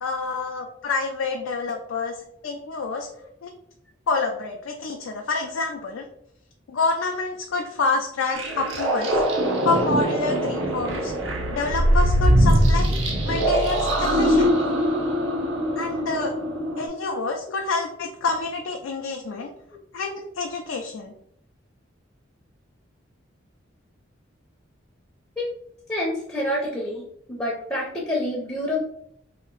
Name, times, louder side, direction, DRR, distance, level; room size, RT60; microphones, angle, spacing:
voice 1, 0.0-3.1 3.4-3.5 4.1-6.1 6.7-9.2 9.6-11.1 11.5-13.0 13.3-14.7 15.8-16.3 16.8-19.5 19.9-21.1, left 3 dB, 75° left, 2 dB, 0.4 m, -28 dB
sound 1, 8.3-16.9, equal, 70° right, 0.6 m, -22 dB
voice 2, 25.9-27.0 27.3-28.8, left 1 dB, 15° left, -3 dB, 0.5 m, -27 dB
2.8 x 2.4 x 3.9 m, 0.73 s
head